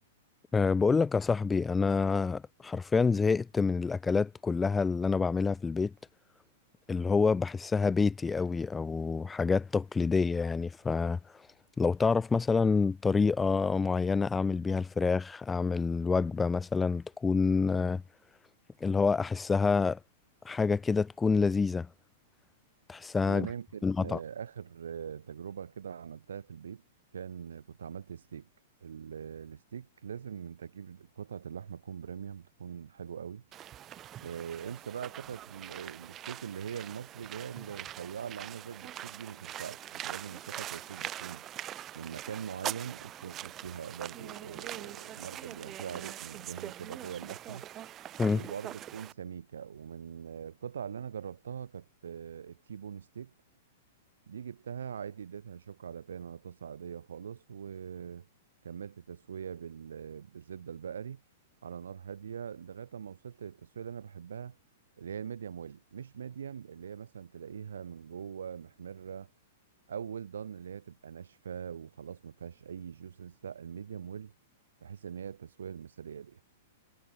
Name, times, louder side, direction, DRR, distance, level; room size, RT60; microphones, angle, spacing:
voice 1, 0.5-5.9 6.9-11.2 11.8-18.0 18.8-20.0 20.4-21.9 22.9-23.5 23.8-24.2 48.2-48.4, left 4 dB, 15° left, 0.7 m, -27 dB
voice 2, 23.3-26.8 27.1-28.5 28.8-33.4 34.2-41.5 42.0-47.7 48.3-53.3 54.3-58.3 58.6-61.2 61.6-64.6 65.0-69.3 69.9-74.3 74.8-76.4, right 7 dB, 75° right, 3.7 m, -42 dB
sound 1, 33.5-49.1, right 12 dB, 30° right, 1.7 m, -43 dB
hypercardioid pair, 110°, 0 cm